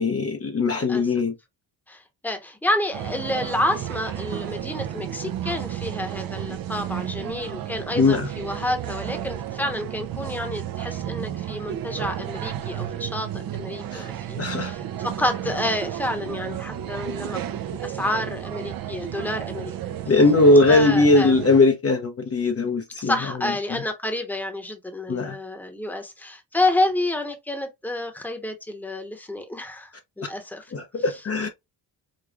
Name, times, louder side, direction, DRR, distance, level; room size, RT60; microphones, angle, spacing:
voice 1, 0.0-1.3 8.0-8.3 13.9-14.1 14.4-14.7 20.1-23.1 23.4-23.8 25.1-25.4 30.7-31.5, left 3 dB, 35° left, 0.7 m, -20 dB
voice 2, 0.7-1.1 1.9-19.7 20.7-21.4 23.0-30.6, left 1 dB, 5° left, 1.0 m, -29 dB
sound 1, 2.9-21.6, right 11 dB, 60° right, 0.6 m, -32 dB
5.2 x 2.3 x 2.3 m
cardioid pair, 75°, 40 cm